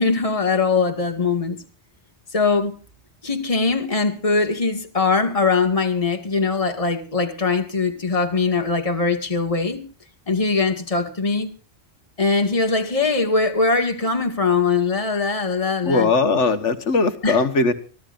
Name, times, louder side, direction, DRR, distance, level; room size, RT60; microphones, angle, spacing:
voice 1, 0.0-1.6 2.3-2.8 3.2-9.9 10.3-11.5 12.2-16.1 17.2-17.4, left 4 dB, 30° left, 2.1 m, -21 dB
voice 2, 15.9-17.7, left 3 dB, 85° left, 1.9 m, -19 dB
25.0 x 15.0 x 2.6 m
omnidirectional pair, 1.2 m